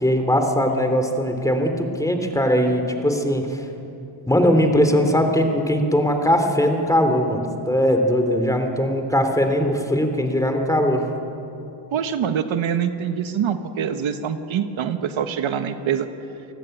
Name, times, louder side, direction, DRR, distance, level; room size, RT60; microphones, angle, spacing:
voice 1, 0.0-3.6 4.3-11.1, equal, 5° left, 5 dB, 3.0 m, -20 dB
voice 2, 11.9-16.1, right 8 dB, 70° right, 8 dB, 1.5 m, -24 dB
29.0 x 19.0 x 9.2 m, 2.8 s
cardioid pair, 135°, 48 cm